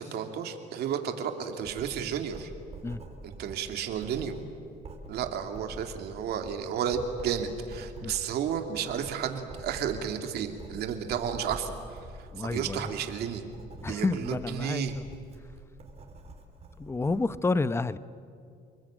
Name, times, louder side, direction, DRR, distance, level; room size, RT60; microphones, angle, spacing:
voice 1, 0.0-2.5 3.2-4.3 5.1-11.7 12.4-13.4 13.8-14.9, right 8 dB, 70° right, 5 dB, 2.8 m, -32 dB
Writing, 1.6-17.2, right 2 dB, 40° right, 4.4 m, -46 dB
voice 2, 12.3-12.9 13.8-15.0 16.8-18.0, left 3 dB, 15° left, 15 dB, 0.8 m, -30 dB
30.0 x 20.5 x 9.0 m, 2.4 s
cardioid pair, 110°, 17 cm